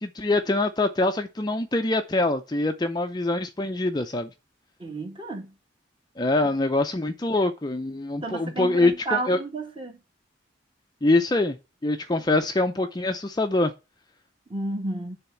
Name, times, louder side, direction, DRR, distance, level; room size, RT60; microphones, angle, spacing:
voice 1, 0.0-4.3 6.2-9.4 11.0-11.6 11.8-13.7, left 2 dB, 20° left, 0.5 m, -24 dB
voice 2, 4.8-5.5 8.2-10.0 14.5-15.1, right 3 dB, 25° right, 1.9 m, -31 dB
10.0 x 3.5 x 6.9 m
head